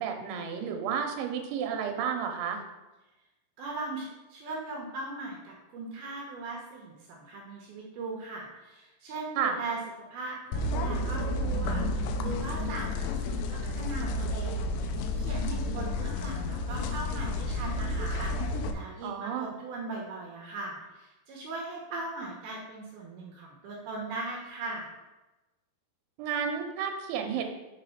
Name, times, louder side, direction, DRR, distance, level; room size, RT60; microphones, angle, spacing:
voice 1, 0.0-2.6 9.4-9.6 19.0-19.5 26.2-27.5, right 7 dB, 90° right, 4 dB, 3.2 m, -31 dB
voice 2, 3.6-9.8 10.1-25.0, right 2 dB, 70° right, -2 dB, 2.5 m, -39 dB
sound 1, 10.5-18.7, left 1 dB, 80° left, 2.7 m, -31 dB
6.6 x 4.9 x 5.7 m, 1.1 s
omnidirectional pair, 5.2 m